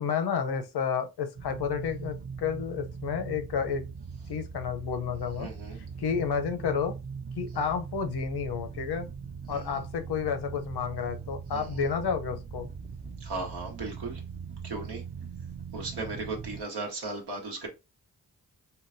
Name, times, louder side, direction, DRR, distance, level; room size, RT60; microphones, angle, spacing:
voice 1, 0.0-3.8 4.3-5.5 6.0-6.9 7.4-9.1 9.5-12.7, left 6 dB, 80° left, 0.6 m, -31 dB
sound 1, 1.4-16.6, right 6 dB, 25° right, 0.3 m, -40 dB
voice 2, 5.4-5.8 7.5-7.7 9.5-9.8 11.5-11.8 13.2-14.2 14.6-15.0 15.7-17.7, right 3 dB, 85° right, 1.0 m, -37 dB
3.7 x 2.2 x 2.5 m
cardioid pair, 45°, 39 cm